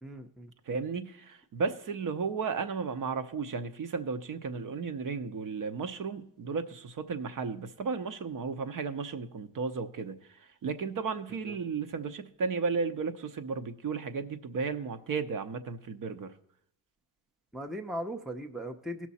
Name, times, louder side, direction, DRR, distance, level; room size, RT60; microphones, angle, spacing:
voice 1, 0.0-0.5 11.5-11.6 17.5-19.1, equal, ahead, 6 dB, 0.6 m, -38 dB
voice 2, 0.7-16.3, right 5 dB, 50° right, 9 dB, 0.9 m, -34 dB
17.0 x 6.1 x 4.2 m, 0.72 s
cardioid pair, 130°, 41 cm